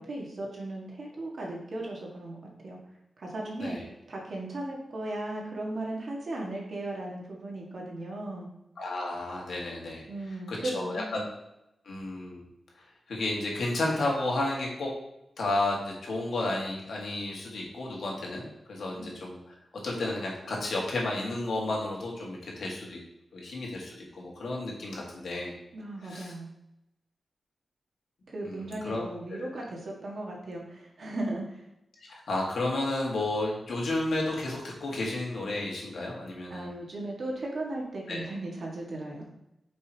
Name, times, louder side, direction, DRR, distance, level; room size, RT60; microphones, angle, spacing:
voice 1, 0.0-2.4 2.6-2.8 3.2-3.8 4.1-8.5 10.1-11.2 19.0-19.1 25.7-26.5 28.3-31.6 36.5-39.3, right 2 dB, 55° right, -2 dB, 2.0 m, -36 dB
voice 2, 8.8-10.0 10.5-11.2 11.9-12.4 13.1-14.9 15.4-19.4 19.8-23.0 23.3-25.5 26.1-26.3 28.4-29.4 32.1-36.7 38.1-38.2, left 2 dB, 80° left, -2 dB, 2.1 m, -32 dB
8.9 x 5.4 x 3.1 m, 0.85 s
wide cardioid pair, 140°, 0 cm